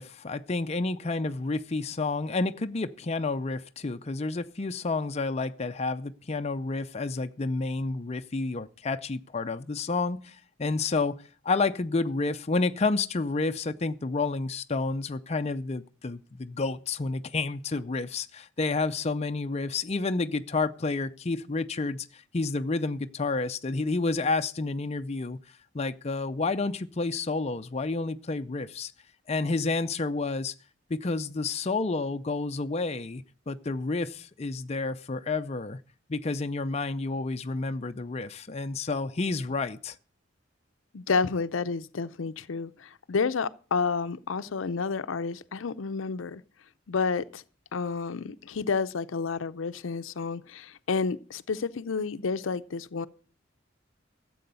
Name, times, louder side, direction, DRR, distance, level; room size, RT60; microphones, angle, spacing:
voice 1, 0.0-11.2 11.4-25.4 25.7-28.9 29.3-30.5 30.9-35.8 36.1-40.0, left 3 dB, 35° left, 0.5 m, -30 dB
voice 2, 40.9-46.4 46.9-47.4 47.7-53.1, left 4 dB, 90° left, 0.6 m, -30 dB
13.5 x 7.7 x 6.8 m
head